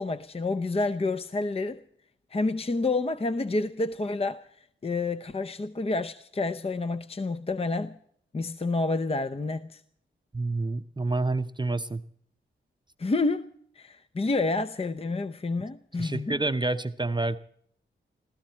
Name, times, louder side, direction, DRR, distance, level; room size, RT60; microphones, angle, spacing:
voice 1, 0.0-1.8 2.3-4.4 4.8-7.9 8.3-9.8 13.0-13.5 13.8-16.4, left 3 dB, 30° left, 0.7 m, -29 dB
voice 2, 10.3-12.0 16.0-17.4, right 2 dB, 20° right, 0.7 m, -28 dB
20.5 x 15.5 x 4.5 m
cardioid pair, 60°, 21 cm